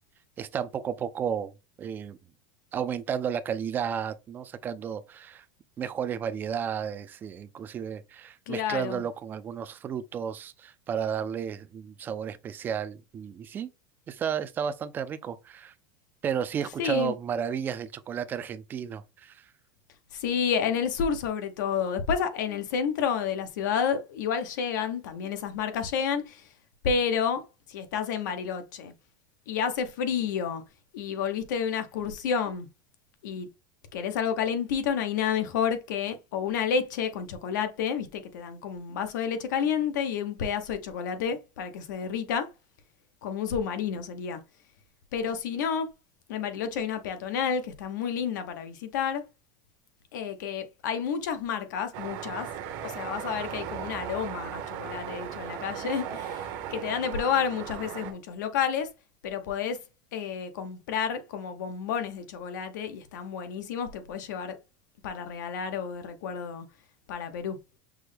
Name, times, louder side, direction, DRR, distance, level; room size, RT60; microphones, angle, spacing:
voice 1, 0.4-1.5 1.8-2.2 2.7-5.4 5.8-13.7 14.1-15.7 16.2-19.5, right 8 dB, 20° right, 0.3 m, -32 dB
voice 2, 8.5-9.0 16.8-17.1 20.1-26.5 26.8-27.4 27.7-28.9 29.5-30.6 30.9-32.7 33.2-33.5 33.9-42.5 43.2-44.4 45.1-45.9 46.3-49.2 50.1-52.5 52.8-58.9 59.2-59.8 60.1-64.6 65.0-66.7 67.1-67.6, left 7 dB, 90° left, 0.9 m, -30 dB
sound 1, 51.9-58.1, right 9 dB, 50° right, 0.8 m, -37 dB
6.0 x 2.2 x 3.3 m
supercardioid pair, 160°, 10 cm